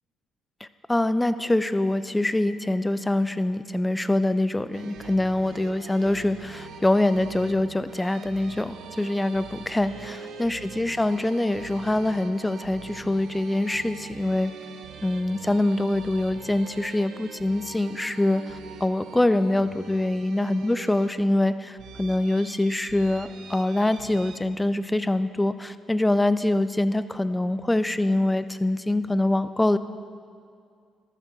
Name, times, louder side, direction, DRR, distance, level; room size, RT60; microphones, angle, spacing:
voice 1, 0.9-14.5 15.0-29.8, left 1 dB, 10° left, 12 dB, 0.4 m, -24 dB
sound 1, 4.7-24.4, right 6 dB, 80° right, 0.7 m, -44 dB
14.5 x 12.5 x 2.7 m, 2.2 s
cardioid pair, 90°, 0 cm